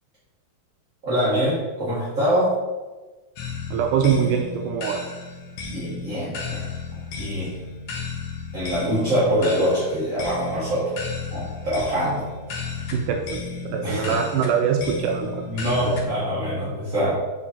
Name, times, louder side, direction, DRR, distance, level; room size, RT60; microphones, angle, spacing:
voice 1, 1.0-2.5 5.7-6.7 7.2-7.5 8.5-11.0 11.3-12.3 13.8-14.2 15.5-17.1, equal, 30° right, -10 dB, 1.6 m, -24 dB
sound 1, 3.4-16.0, left 4 dB, 80° left, 1.1 m, -34 dB
voice 2, 3.7-5.0 12.9-13.4 13.7-15.4 15.9-16.0, right 7 dB, 85° right, 3 dB, 2.1 m, -23 dB
7.4 x 4.2 x 4.3 m, 1.2 s
omnidirectional pair, 3.7 m